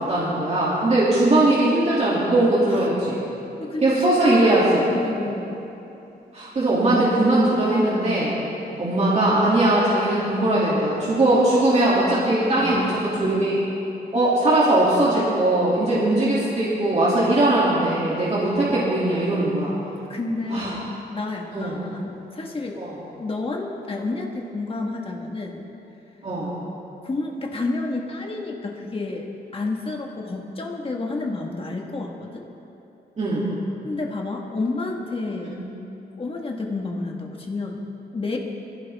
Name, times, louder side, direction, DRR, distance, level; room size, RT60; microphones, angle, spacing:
voice 1, 0.0-3.2 3.8-4.9 6.3-8.4 8.8-13.6 14.1-19.7 20.5-20.7 21.5-21.8 22.8-23.0 26.2-26.5 33.2-33.5 35.4-35.5, right 1 dB, 40° right, -8 dB, 2.8 m, -20 dB
voice 2, 3.5-4.0 4.9-5.6 12.6-13.4 20.1-22.8 23.2-25.6 27.0-29.3 29.5-32.4 33.8-35.6 36.2-37.8 38.1-38.4, left 3 dB, 30° left, 0 dB, 1.7 m, -30 dB
22.5 x 15.5 x 3.6 m, 3.0 s
wide cardioid pair, 175°, 17 cm